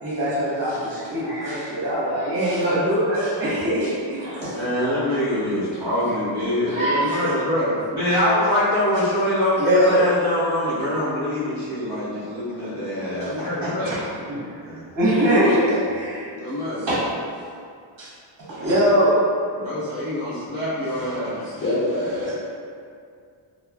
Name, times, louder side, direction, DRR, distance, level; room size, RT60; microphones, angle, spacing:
voice 1, 0.0-4.5 5.1-5.2 6.7-7.4 9.6-10.0 12.2-12.3 13.2-13.3 13.8-14.0 14.3-14.6 14.9-17.0 18.0-18.1 18.5-19.2, equal, 45° right, -8 dB, 0.9 m, -22 dB
voice 2, 4.5-14.0 14.6-14.8 16.3-16.9 19.5-21.4, left 1 dB, 10° right, -16 dB, 0.7 m, -24 dB
voice 3, 21.4-22.3, left 1 dB, 30° left, -11 dB, 0.3 m, -26 dB
2.9 x 2.0 x 2.2 m, 2.2 s
wide cardioid pair, 155°, 48 cm